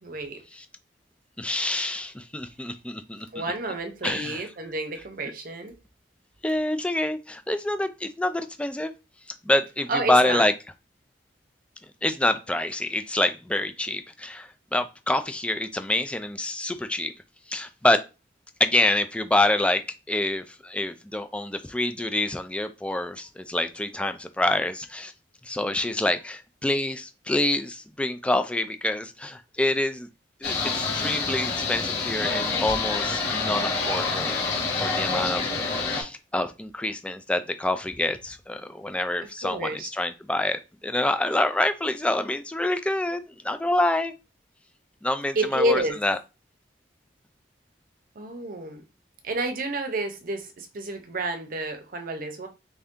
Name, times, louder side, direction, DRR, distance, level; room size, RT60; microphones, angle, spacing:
voice 1, 0.0-0.4 3.3-5.7 9.9-10.5 39.4-39.9 45.4-46.0 48.2-48.8 49.2-52.5, right 1 dB, 55° right, 0.7 m, -29 dB
voice 2, 1.4-3.4 4.0-4.4 6.4-8.9 9.4-10.5 12.0-17.1 17.5-18.0 18.6-25.1 25.4-30.1 30.4-34.4 34.8-35.5 35.9-44.1 45.0-46.2, left 1 dB, 5° left, 0.3 m, -26 dB
sound 1, 30.4-36.0, left 4 dB, 70° left, 1.6 m, -27 dB
3.3 x 2.7 x 3.6 m
head